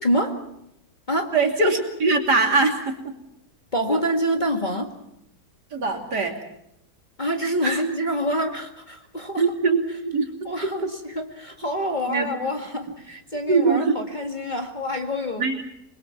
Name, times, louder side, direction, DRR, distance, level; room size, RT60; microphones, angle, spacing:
voice 1, 0.0-0.5 1.1-1.3 3.7-5.0 7.2-9.4 10.4-15.6, equal, 25° left, 3 dB, 2.0 m, -26 dB
voice 2, 1.3-3.1 3.9-4.0 5.7-6.3 7.6-7.8 9.4-9.8 10.1-10.3 12.1-12.3 13.5-14.0 15.4-15.6, right 3 dB, 60° right, 3 dB, 3.4 m, -22 dB
28.0 x 22.0 x 5.9 m, 0.80 s
omnidirectional pair, 2.0 m